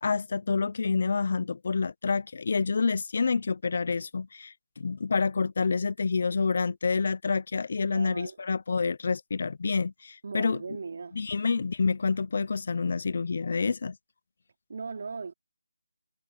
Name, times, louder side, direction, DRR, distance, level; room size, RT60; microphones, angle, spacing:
voice 1, 0.0-10.6 11.2-14.0, left 4 dB, 45° left, 0.4 m, -28 dB
voice 2, 7.9-8.4 10.2-11.2 14.7-15.3, right 4 dB, 50° right, 2.9 m, -38 dB
figure-of-eight pair, 170°, 0 cm